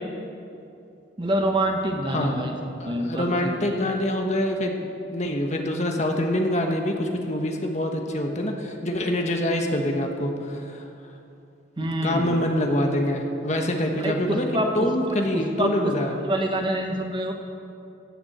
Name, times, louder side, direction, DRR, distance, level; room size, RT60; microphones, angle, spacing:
voice 1, 1.2-2.5 2.8-3.7 11.8-12.4 14.0-14.9 15.3-17.3, right 1 dB, 25° right, 3 dB, 1.0 m, -26 dB
voice 2, 2.1-2.5 2.8-10.9 11.8-14.5 14.7-16.1, left 1 dB, 35° left, 3 dB, 1.3 m, -25 dB
15.5 x 7.1 x 7.9 m, 2.7 s
head